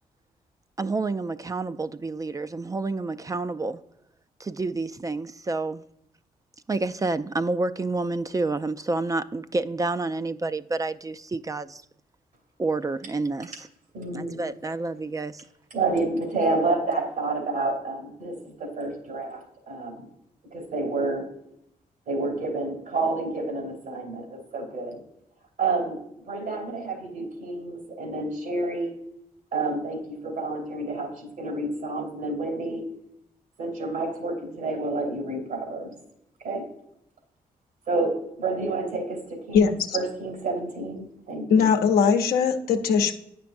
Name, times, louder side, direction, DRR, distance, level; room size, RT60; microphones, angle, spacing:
voice 1, 0.8-3.8 4.4-5.8 6.7-11.8 12.6-13.7 14.1-15.4, right 3 dB, 25° right, 0.3 m, -29 dB
voice 2, 13.9-14.4 15.7-20.0 20.5-21.3 22.1-25.0 25.6-26.0 26.2-28.9 29.5-32.8 33.6-35.9 36.4-36.6 37.9-41.7, right 3 dB, 85° right, 3.0 m, -29 dB
voice 3, 39.5-40.0 41.5-43.1, left 6 dB, 85° left, 0.8 m, -20 dB
9.1 x 5.9 x 2.6 m
cardioid pair, 60°, 15 cm